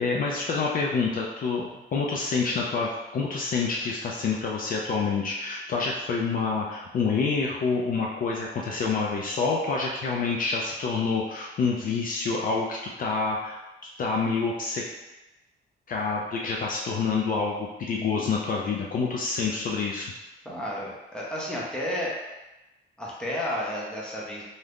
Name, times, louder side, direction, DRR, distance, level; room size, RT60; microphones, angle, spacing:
voice 1, 0.0-13.6 14.0-14.8 15.9-20.1, left 4 dB, 45° left, -2 dB, 0.4 m, -27 dB
voice 2, 20.4-22.2 23.0-24.4, left 1 dB, 5° left, -5 dB, 0.6 m, -32 dB
2.7 x 2.4 x 3.4 m, 1.0 s
cardioid pair, 160°, 19 cm